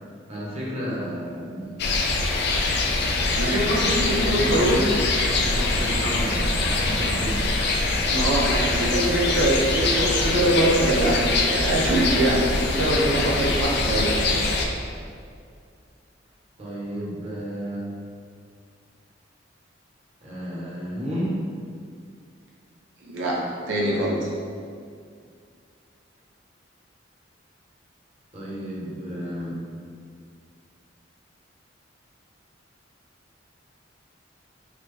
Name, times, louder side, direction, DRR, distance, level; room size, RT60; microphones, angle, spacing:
voice 1, 0.3-1.8 3.4-7.5 16.6-17.8 20.2-21.4 28.3-29.6, equal, 35° right, -7 dB, 1.0 m, -32 dB
sound 1, 1.8-14.7, left 2 dB, 60° left, 0.4 m, -23 dB
voice 2, 3.3-4.8 8.1-14.1 23.0-23.4 23.7-24.3, right 1 dB, 90° right, -3 dB, 0.6 m, -23 dB
4.0 x 2.7 x 3.2 m, 2.2 s
head